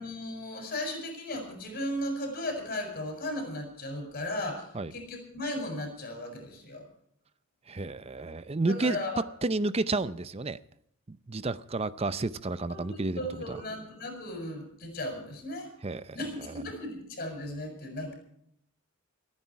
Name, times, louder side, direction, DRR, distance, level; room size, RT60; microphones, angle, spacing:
voice 1, 0.0-6.9 8.7-9.2 12.7-15.7 16.1-18.1, left 1 dB, 45° left, 7.1 m, -36 dB
voice 2, 7.7-9.0 9.4-10.6 11.1-13.2 13.5-13.6 15.8-16.2, right 3 dB, 30° right, 0.6 m, -31 dB
28.5 x 9.9 x 4.7 m
head